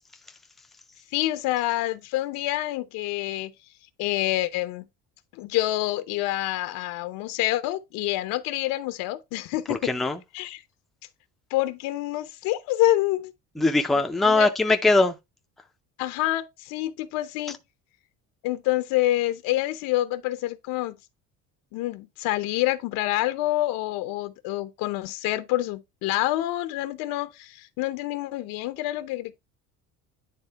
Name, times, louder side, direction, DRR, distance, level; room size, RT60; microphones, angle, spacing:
voice 1, 1.1-3.5 4.0-4.8 5.4-9.9 10.3-10.6 11.5-13.3 14.2-14.5 16.0-17.6 18.4-21.0 21.7-29.5, left 15 dB, 90° left, 0.8 m, -27 dB
voice 2, 9.7-10.2 13.6-15.1, left 2 dB, ahead, 0.3 m, -21 dB
9.6 x 3.7 x 3.3 m
cardioid pair, 165°, 33 cm